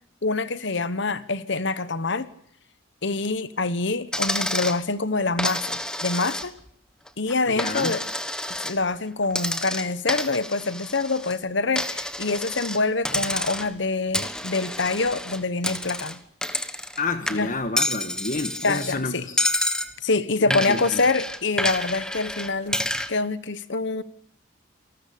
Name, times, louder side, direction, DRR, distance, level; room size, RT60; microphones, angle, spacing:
voice 1, 0.2-2.3 3.0-6.5 7.2-8.1 8.6-16.2 17.3-17.5 18.6-19.2 20.0-22.8 23.1-24.0, left 3 dB, 60° left, 1.2 m, -25 dB
Coin (dropping), 4.1-4.8 5.4-6.7 7.1-8.8 9.3-11.3 11.8-12.8 13.0-13.8 14.1-17.0 17.3-19.0 19.4-19.9 20.5-23.1, left 1 dB, 5° left, 1.4 m, -29 dB
voice 2, 7.5-8.0 17.0-19.4 20.4-21.0, left 3 dB, 40° left, 1.6 m, -29 dB
28.0 x 19.0 x 8.6 m
head